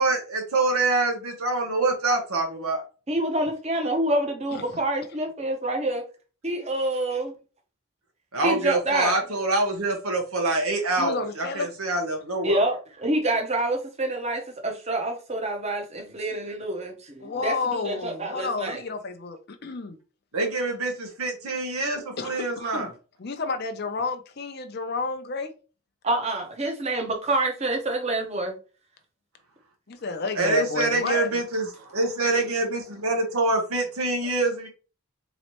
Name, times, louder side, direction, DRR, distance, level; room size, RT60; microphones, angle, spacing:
voice 1, 0.0-2.8 8.3-12.6 20.3-22.9 30.3-34.7, right 2 dB, 85° right, 1.0 m, -25 dB
voice 2, 3.1-6.0 6.4-7.3 8.4-9.2 12.4-18.8 26.0-28.6, right 1 dB, 30° right, 0.8 m, -27 dB
voice 3, 4.5-4.8 11.0-11.7 17.2-20.0 22.2-22.9 23.2-25.5 29.9-31.3, left 4 dB, 45° left, 0.6 m, -31 dB
4.0 x 3.1 x 3.0 m
head